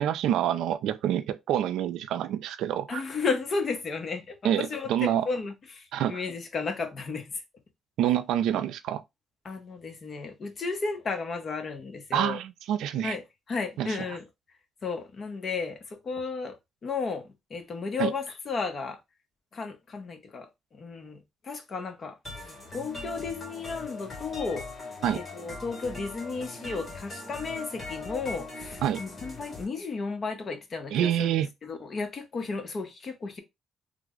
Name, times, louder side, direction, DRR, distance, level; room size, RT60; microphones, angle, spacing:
voice 1, 0.0-3.0 4.4-5.3 5.9-6.2 8.0-9.0 12.1-13.2 13.8-13.9 18.0-18.1 25.0-25.2 28.8-29.0 30.9-31.5, right 10 dB, 85° right, 0.4 m, -27 dB
voice 2, 2.9-7.3 9.4-12.4 13.0-13.2 13.5-14.2 14.8-16.6 16.8-19.0 19.5-31.3 31.6-33.4, left 4 dB, 45° left, 0.9 m, -34 dB
sound 1, 22.2-29.6, left 3 dB, 30° left, 1.7 m, -40 dB
3.3 x 2.1 x 3.6 m
cardioid pair, 90°, 0 cm